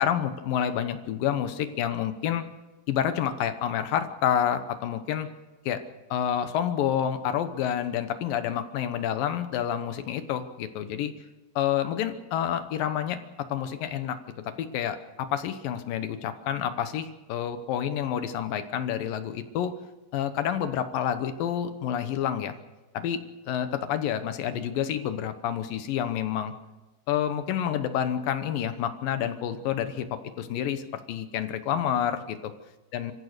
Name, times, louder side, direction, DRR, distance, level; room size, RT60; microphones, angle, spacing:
voice 1, 0.0-2.5 2.9-5.3 5.7-5.8 6.1-11.1 11.6-13.2 13.5-14.2 14.6-19.7 20.1-22.5 22.9-23.2 23.5-26.5 27.1-30.8 31.1-32.4 32.9-33.1, left 9 dB, 70° left, 10 dB, 2.3 m, -28 dB
26.5 x 15.0 x 6.7 m, 1.1 s
omnidirectional pair, 5.0 m